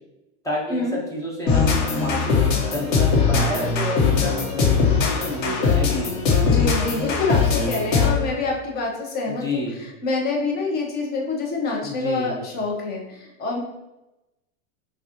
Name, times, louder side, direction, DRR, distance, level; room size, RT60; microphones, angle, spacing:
voice 1, 0.4-2.4 2.7-6.2 9.3-9.8 11.8-12.4, left 1 dB, 10° left, -3 dB, 0.5 m, -29 dB
sound 1, 1.5-8.3, left 5 dB, 90° left, 1.2 m, -20 dB
voice 2, 6.4-9.6 10.0-13.6, left 3 dB, 25° left, -1 dB, 0.8 m, -26 dB
5.7 x 2.4 x 2.9 m, 0.96 s
supercardioid pair, 145°, 38 cm